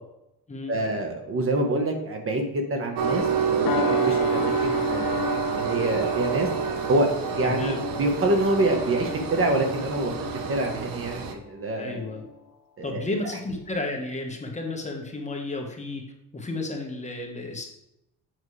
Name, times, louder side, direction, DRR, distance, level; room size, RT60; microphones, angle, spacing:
voice 1, 0.7-6.5 6.9-7.1 7.4-10.1 10.5-12.0 12.8-13.1, right 1 dB, 40° right, 3 dB, 1.2 m, -26 dB
Train, 3.0-11.3, right 7 dB, 85° right, 0.9 m, -28 dB
sound 1, 3.7-12.5 13.0-13.2, left 10 dB, 80° left, 0.7 m, -35 dB
voice 2, 7.4-7.8 11.7-12.2 12.8-16.0 16.3-17.6, left 2 dB, 20° left, 1 dB, 1.3 m, -32 dB
7.6 x 6.2 x 3.2 m, 0.85 s
cardioid pair, 130°, 34 cm